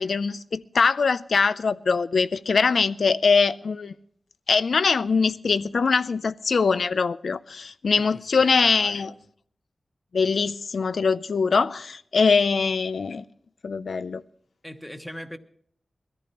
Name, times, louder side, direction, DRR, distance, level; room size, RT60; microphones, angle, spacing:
voice 1, 0.0-3.9 4.5-9.1 10.1-13.2 13.6-14.2, left 5 dB, 85° left, 0.4 m, -22 dB
voice 2, 7.9-9.2 14.6-15.4, equal, 10° left, 1.2 m, -41 dB
21.5 x 14.0 x 2.9 m
wide cardioid pair, 70°, 0 cm